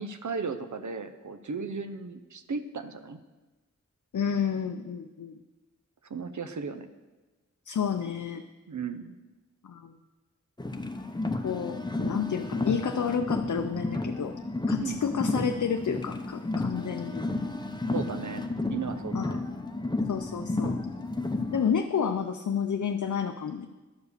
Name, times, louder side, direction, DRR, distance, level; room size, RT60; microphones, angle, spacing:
voice 1, 0.0-3.2 6.0-6.9 8.7-9.1 14.8-15.0 17.9-19.4, right 5 dB, 70° right, 9 dB, 0.6 m, -36 dB
voice 2, 4.1-5.4 7.7-8.4 9.6-10.0 11.4-14.3 14.7-17.3 19.1-19.4 20.1-20.8 21.5-23.7, left 7 dB, 75° left, 6 dB, 0.5 m, -30 dB
Car, 10.6-21.7, left 2 dB, 15° left, 0.7 m, -32 dB
11.5 x 4.8 x 6.6 m, 1.2 s
wide cardioid pair, 55°, 30 cm